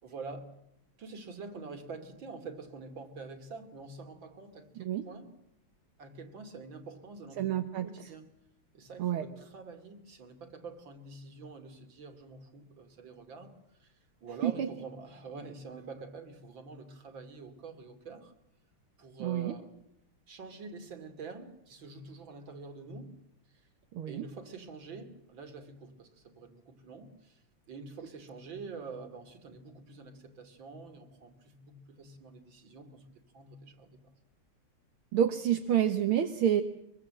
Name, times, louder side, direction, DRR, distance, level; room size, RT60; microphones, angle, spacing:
voice 1, 0.0-0.5 1.0-5.3 6.0-7.6 7.8-8.3 8.7-13.9 14.2-18.3 19.0-19.7 20.3-23.2 23.5-23.6 24.0-27.4 27.7-33.0 33.3-34.0, right 4 dB, 60° right, 7 dB, 3.4 m, -46 dB
voice 2, 7.4-7.9 9.0-9.3 14.4-14.7 19.2-19.6 23.9-24.2 35.1-36.6, right 10 dB, 75° right, 6 dB, 2.1 m, -28 dB
24.0 x 23.5 x 7.6 m, 0.81 s
omnidirectional pair, 2.4 m